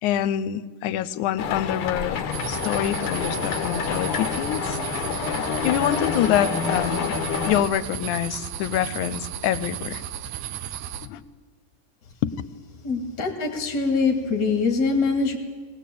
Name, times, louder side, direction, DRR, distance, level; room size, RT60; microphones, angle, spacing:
voice 1, 0.0-4.8 5.6-10.0 11.0-11.2 12.2-12.3, left 11 dB, 80° left, 16 dB, 2.1 m, -26 dB
sound 1, 1.4-7.6, left 6 dB, 55° left, 1.8 m, -28 dB
sound 2, 2.3-11.1, right 10 dB, 75° right, 2.1 m, -34 dB
voice 2, 12.8-15.4, left 4 dB, 35° left, 4 dB, 2.6 m, -23 dB
19.5 x 18.5 x 8.5 m, 1.5 s
omnidirectional pair, 3.5 m